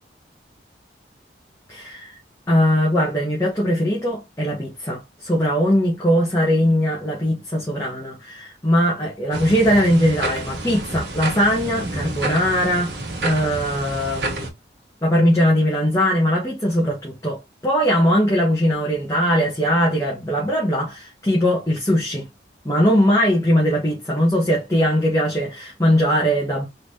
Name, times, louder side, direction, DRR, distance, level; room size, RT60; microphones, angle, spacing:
voice 1, 1.7-2.1 2.5-12.9 13.2-14.5 15.0-22.3 22.6-26.7, equal, 20° left, 1.5 m, -20 dB
sound 1, 9.3-14.5, right 2 dB, 85° right, 1.3 m, -29 dB
4.3 x 3.6 x 2.8 m
head